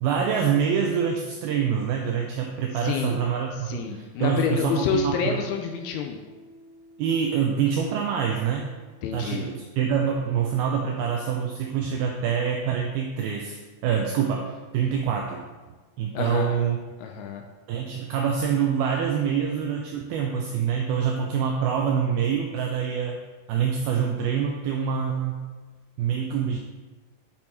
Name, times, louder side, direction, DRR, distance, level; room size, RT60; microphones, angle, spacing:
voice 1, 0.0-5.4 7.0-8.7 9.1-15.5 16.0-16.8 17.7-23.2 23.5-25.4 26.0-26.6, right 7 dB, 90° right, 1 dB, 2.1 m, -26 dB
voice 2, 2.8-3.2 3.7-6.2 9.0-9.5 16.1-16.6 17.0-17.4, left 7 dB, 80° left, 4 dB, 2.4 m, -28 dB
Piano, 5.4-12.6, equal, 45° right, 1.0 m, -54 dB
8.5 x 6.2 x 4.3 m, 1.3 s
omnidirectional pair, 5.1 m